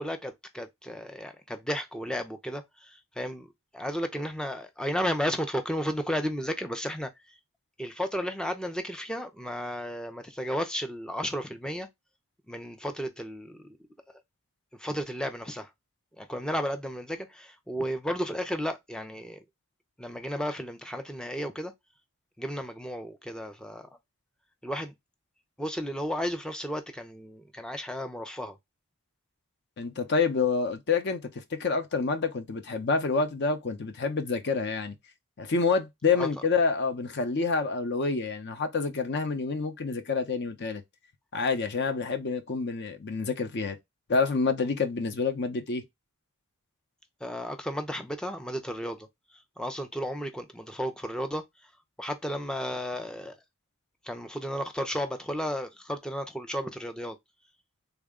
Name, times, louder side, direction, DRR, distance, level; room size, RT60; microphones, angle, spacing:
voice 1, 0.0-3.5 3.7-7.1 7.8-11.9 12.5-13.8 14.8-15.7 16.2-19.4 20.0-21.7 22.4-23.9 24.6-24.9 25.6-28.6 36.2-36.3 47.2-49.1 49.6-51.4 52.0-53.4 54.0-57.2, equal, 5° left, 0.4 m, -33 dB
voice 2, 29.8-35.0 35.4-40.8 41.3-43.8 44.1-45.8, left 4 dB, 50° left, 0.6 m, -28 dB
3.5 x 2.1 x 3.5 m
head